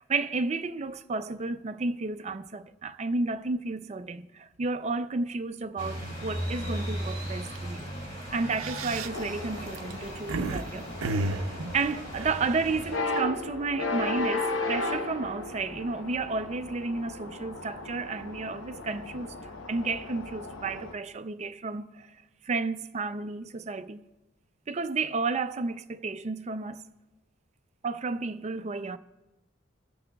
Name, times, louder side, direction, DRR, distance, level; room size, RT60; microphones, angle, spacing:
voice 1, 0.0-10.9 11.7-19.3 19.7-24.0 24.7-26.8 27.8-29.0, right 3 dB, 35° right, 0.4 m, -32 dB
sound 1, 5.8-13.0, equal, 35° left, 2.5 m, -37 dB
sound 2, 6.7-7.0 7.4-7.6 8.3-10.6 11.0-12.8, right 2 dB, 90° right, 0.6 m, -32 dB
sound 3, 9.1-20.9, left 2 dB, 70° left, 0.9 m, -36 dB
29.0 x 9.7 x 2.3 m
head